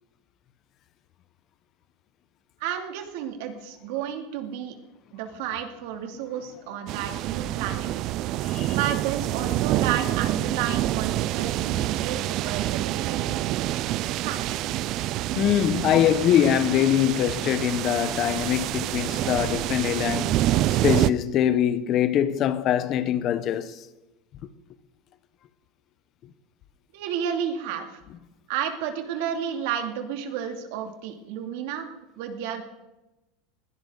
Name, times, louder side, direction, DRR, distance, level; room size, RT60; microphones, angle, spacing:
voice 1, 2.6-4.8 5.1-7.9 8.7-13.5 14.2-14.8 26.9-28.0 28.5-31.9 32.2-32.6, right 9 dB, 70° right, 2.7 m, -32 dB
sound 1, 6.9-21.1, right 14 dB, 45° right, 0.5 m, -27 dB
voice 2, 15.4-23.8, left 10 dB, 40° left, 1.0 m, -23 dB
21.0 x 17.0 x 4.0 m
supercardioid pair, 140°, 0 cm